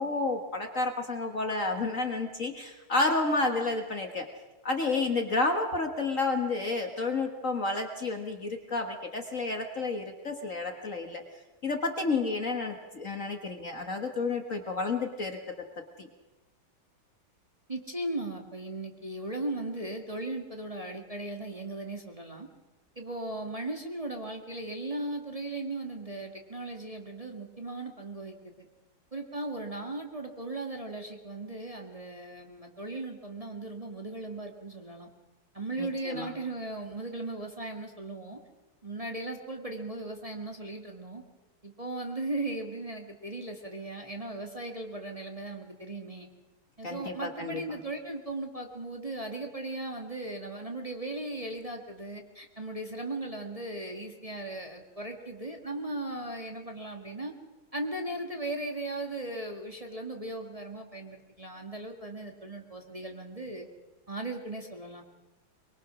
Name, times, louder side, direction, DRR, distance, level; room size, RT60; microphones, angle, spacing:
voice 1, 0.0-4.3 4.6-11.2 11.6-15.4 16.0-16.1 35.8-36.3 46.8-47.6, left 3 dB, 40° left, 4 dB, 1.7 m, -30 dB
voice 2, 17.7-22.5 23.0-28.7 29.1-35.1 35.5-38.4 38.8-41.2 41.6-46.3 46.8-57.3 57.7-63.7 64.1-65.0, right 2 dB, 15° right, 2 dB, 1.9 m, -37 dB
23.5 x 23.0 x 6.2 m, 1.2 s
omnidirectional pair, 2.3 m